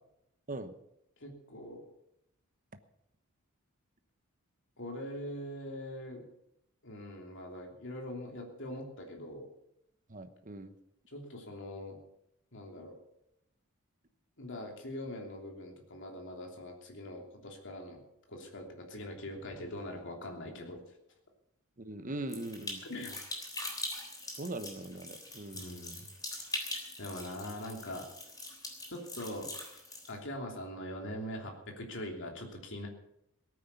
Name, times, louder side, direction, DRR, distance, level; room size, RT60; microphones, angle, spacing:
voice 1, 1.2-1.9 4.8-6.3 6.8-9.5 11.1-12.0 12.5-13.0 14.4-18.0 18.3-20.8 22.9-23.2 25.5-26.1 27.0-28.1 28.9-29.5 30.1-32.9, left 1 dB, 55° left, 1 dB, 3.1 m, -42 dB
voice 2, 10.1-10.7 21.8-22.8 24.4-25.7, right 2 dB, 35° right, 9 dB, 1.0 m, -40 dB
sound 1, 22.3-30.1, left 2 dB, 15° left, 3.5 m, -42 dB
17.5 x 9.6 x 7.0 m, 0.81 s
head